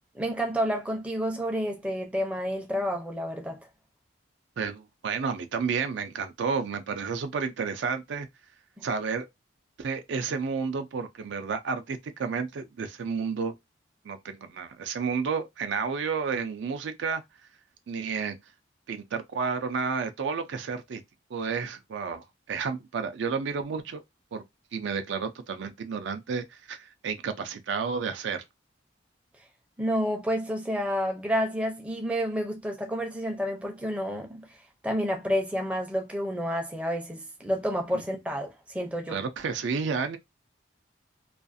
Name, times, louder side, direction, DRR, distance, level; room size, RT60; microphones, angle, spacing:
voice 1, 0.1-3.6 8.8-8.9 29.8-34.5 34.8-39.2, equal, 5° right, 0.4 m, -29 dB
voice 2, 4.6-8.3 8.8-9.2 9.8-13.5 14.0-17.2 17.9-18.4 18.9-21.0 21.3-24.0 24.3-24.4 24.7-28.4 37.9-38.0 39.1-40.2, right 5 dB, 70° right, 0.4 m, -31 dB
2.4 x 2.3 x 2.5 m
head